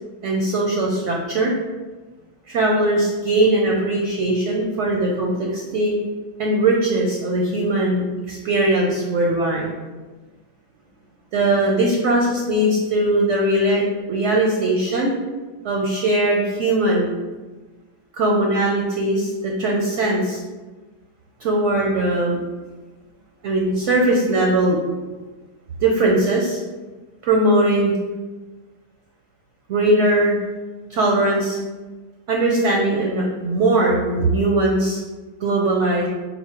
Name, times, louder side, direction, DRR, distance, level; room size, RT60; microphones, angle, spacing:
voice 1, 0.2-1.5 2.5-6.0 6.4-9.7 11.3-13.8 14.1-15.1 15.6-17.1 18.1-20.4 21.4-22.4 23.4-24.8 25.8-26.6 27.2-27.9 29.7-30.4 30.9-31.6 32.3-35.0 35.4-36.1, right 1 dB, 65° right, -1 dB, 0.7 m, -20 dB
4.3 x 2.0 x 4.3 m, 1.2 s
omnidirectional pair, 1.8 m